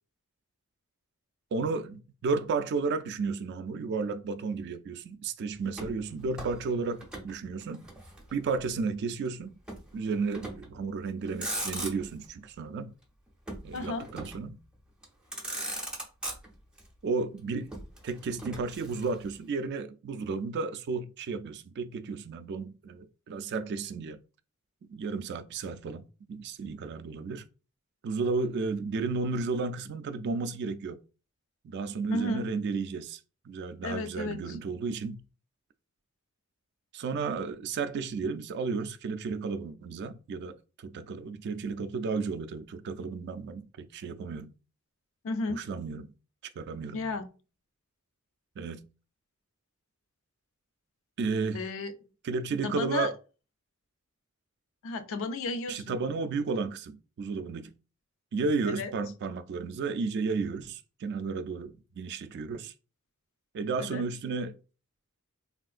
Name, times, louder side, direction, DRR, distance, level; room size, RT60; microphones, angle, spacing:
voice 1, 1.5-7.9 8.3-9.6 9.9-12.9 13.6-14.6 17.0-17.7 18.0-24.2 24.9-27.4 28.0-31.0 31.6-33.2 33.5-35.2 36.9-44.5 45.5-46.1 46.6-47.1 48.6-48.8 51.2-51.6 52.2-53.1 55.7-57.7 58.3-62.7 63.5-64.6, right 4 dB, 50° right, 0.3 m, -33 dB
Motor vehicle (road), 5.7-7.3 7.6-8.7 9.7-9.9 10.3-10.8 11.2-12.3 13.5-14.5 15.0-15.1 15.3-16.8 17.7-19.3, right 1 dB, 5° right, 0.5 m, -39 dB
voice 2, 13.7-14.1 32.1-32.5 33.8-34.6 45.2-45.6 46.9-47.3 51.5-51.9 52.6-53.1 54.8-55.8 58.8-58.9 63.8-64.0, left 3 dB, 65° left, 0.4 m, -33 dB
3.5 x 2.4 x 2.4 m
head